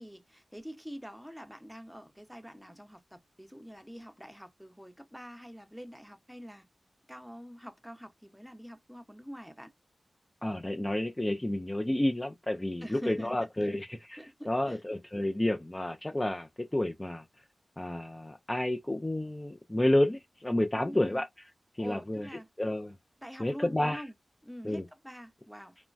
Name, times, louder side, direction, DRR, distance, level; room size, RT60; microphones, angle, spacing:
voice 1, 0.0-6.6 7.1-9.7 11.3-11.5 12.8-13.7 14.2-14.8 20.8-21.2 21.8-22.5 23.2-24.1 24.4-25.8, equal, ahead, 0.8 m, -45 dB
voice 2, 10.4-14.2 14.5-17.2 17.8-21.3 21.8-22.3 22.6-23.0 23.4-24.0 24.6-24.8, left 1 dB, 20° left, 0.4 m, -30 dB
3.1 x 2.1 x 2.5 m
cardioid pair, 45°, 0 cm